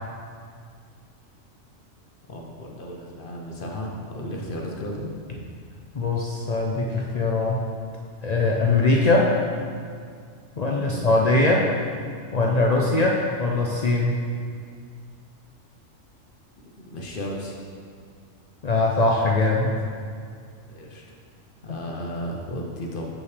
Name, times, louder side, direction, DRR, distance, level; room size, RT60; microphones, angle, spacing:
voice 1, 2.3-5.1 10.7-11.1 16.8-17.6 20.7-21.0 21.6-23.1, equal, 50° left, -1 dB, 0.8 m, -34 dB
voice 2, 5.9-7.6 8.2-9.3 10.6-11.7 12.3-14.2 18.6-19.7, left 2 dB, 70° left, -2 dB, 0.4 m, -21 dB
7.0 x 5.6 x 3.2 m, 2.1 s
omnidirectional pair, 1.3 m